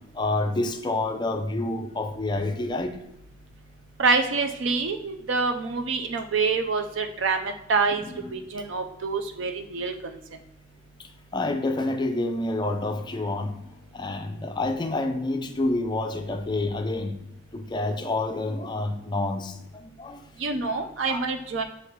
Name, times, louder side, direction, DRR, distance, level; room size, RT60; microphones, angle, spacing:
voice 1, 0.1-3.0 8.0-8.4 11.3-13.6 13.9-17.2 17.5-20.2 21.1-21.2, left 2 dB, 25° left, 5 dB, 0.4 m, -28 dB
voice 2, 4.0-9.9 20.4-21.6, right 4 dB, 70° right, 6 dB, 0.5 m, -26 dB
5.8 x 2.8 x 3.1 m, 0.84 s
head